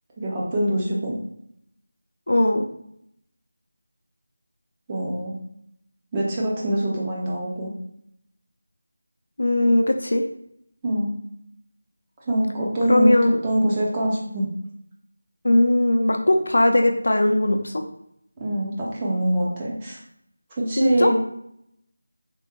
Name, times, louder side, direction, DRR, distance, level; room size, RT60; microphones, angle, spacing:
voice 1, 0.2-1.1 4.9-5.3 6.1-7.7 10.8-11.2 12.3-13.1 13.4-14.4 18.4-20.0 20.6-21.1, right 1 dB, 15° right, -5 dB, 0.5 m, -24 dB
voice 2, 2.3-2.7 9.4-10.3 12.9-13.4 15.4-17.8 20.8-21.1, left 1 dB, 75° left, 4 dB, 0.5 m, -19 dB
3.4 x 2.2 x 2.8 m, 0.74 s
figure-of-eight pair, 175°, 0 cm